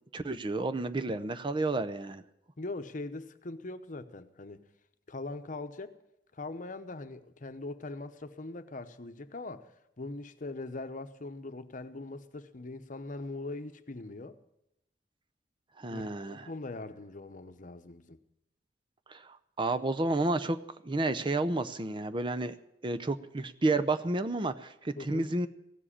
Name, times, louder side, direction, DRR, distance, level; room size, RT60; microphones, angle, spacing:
voice 1, 0.1-2.2 15.8-16.5 19.1-20.6 20.8-22.5 22.8-25.5, right 2 dB, 25° right, 0.6 m, -31 dB
voice 2, 2.6-4.6 5.1-6.0 6.3-14.4 15.9-18.2 25.0-25.3, left 2 dB, 45° left, 0.9 m, -41 dB
16.5 x 7.6 x 9.9 m
head